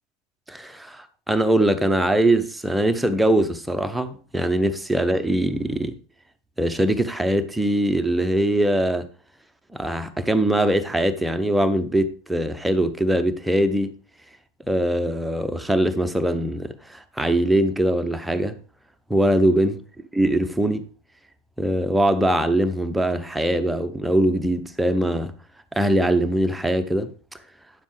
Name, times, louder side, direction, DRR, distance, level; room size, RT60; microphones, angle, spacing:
voice 1, 0.5-6.0 6.6-9.1 9.7-13.9 14.7-18.5 19.1-19.8 20.1-20.8 21.6-25.3 25.8-27.1, right 1 dB, 5° right, 0.8 m, -22 dB
9.6 x 7.2 x 3.3 m
figure-of-eight pair, 90°, 0 cm